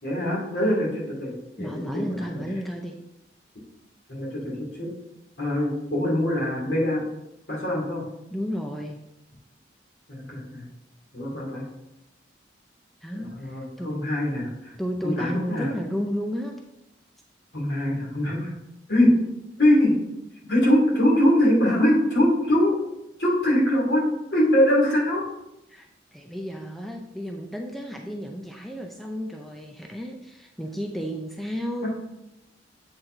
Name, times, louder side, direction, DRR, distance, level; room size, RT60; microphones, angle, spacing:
voice 1, 0.0-2.3 4.1-4.9 5.4-7.0 7.5-8.0 10.1-10.7 11.1-11.6 13.1-14.7 15.0-15.7 17.5-18.5 18.9-19.1 19.6-20.0 20.5-22.7 23.2-24.0 24.3-25.2 31.8-31.9, left 1 dB, 65° left, -4 dB, 2.7 m, -23 dB
voice 2, 1.6-3.0 8.3-9.0 13.0-14.0 14.8-16.6 25.7-31.9, equal, ahead, 1 dB, 0.4 m, -32 dB
7.9 x 4.4 x 3.8 m, 0.89 s
head